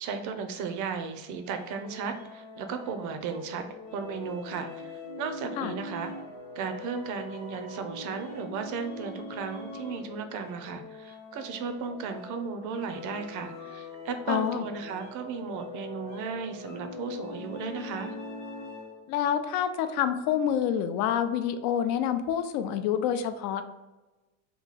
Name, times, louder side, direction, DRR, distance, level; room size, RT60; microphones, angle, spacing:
voice 1, 0.0-6.1 6.6-18.1, right 5 dB, 55° right, 7 dB, 0.5 m, -35 dB
sound 1, 1.4-19.1, left 3 dB, 35° left, 0.8 m, -42 dB
voice 2, 14.3-14.6 19.1-23.6, left 9 dB, 75° left, 9 dB, 0.5 m, -27 dB
3.0 x 2.2 x 4.0 m, 1.1 s
cardioid pair, 155°, 37 cm